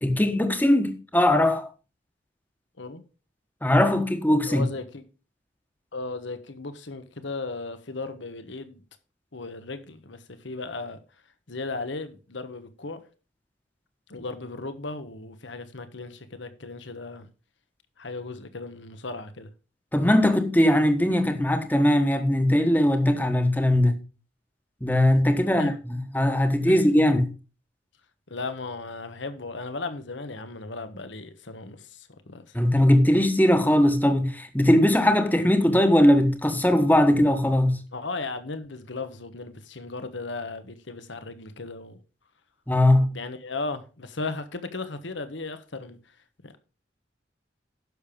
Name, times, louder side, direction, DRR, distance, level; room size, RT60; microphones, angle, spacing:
voice 1, 0.0-1.7 3.6-4.6 19.9-24.0 24.8-27.3 32.5-37.8 42.7-43.1, left 1 dB, 10° left, 1.3 m, -20 dB
voice 2, 4.4-5.0 5.9-8.8 9.3-11.0 11.5-13.0 14.1-17.3 18.0-19.5 25.3-25.8 26.6-26.8 28.3-32.9 37.9-42.0 43.0-46.0 46.4-46.6, left 3 dB, 75° left, 1.3 m, -36 dB
11.0 x 6.9 x 5.3 m
head